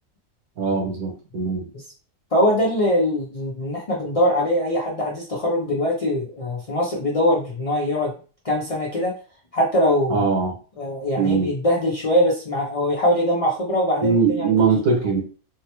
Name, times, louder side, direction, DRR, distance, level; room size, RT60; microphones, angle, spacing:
voice 1, 0.6-1.7 10.1-10.5 11.1-11.5 14.0-15.2, right 5 dB, 85° right, 0 dB, 1.5 m, -21 dB
voice 2, 2.3-8.1 8.4-9.1 9.5-10.2 10.8-14.5, left 1 dB, 50° left, -3 dB, 0.4 m, -22 dB
3.6 x 2.1 x 2.9 m, 0.37 s
omnidirectional pair, 1.5 m